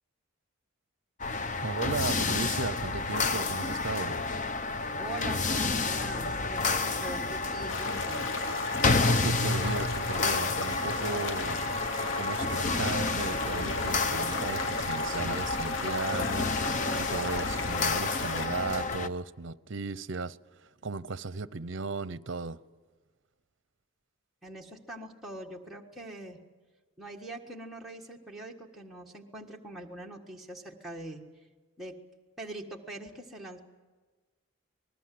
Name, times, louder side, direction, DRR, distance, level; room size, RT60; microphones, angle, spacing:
sound 1, 1.2-19.1, left 3 dB, 35° left, 0.8 m, -30 dB
voice 1, 1.6-4.2 9.1-11.6 12.2-20.4 20.8-22.6, right 3 dB, 60° right, 0.7 m, -36 dB
voice 2, 5.0-8.3 24.4-26.4 27.0-31.5 31.8-32.0 32.4-33.6, right 1 dB, ahead, 1.6 m, -43 dB
sound 2, 7.7-18.5, left 4 dB, 60° left, 1.0 m, -36 dB
27.0 x 20.0 x 7.7 m
head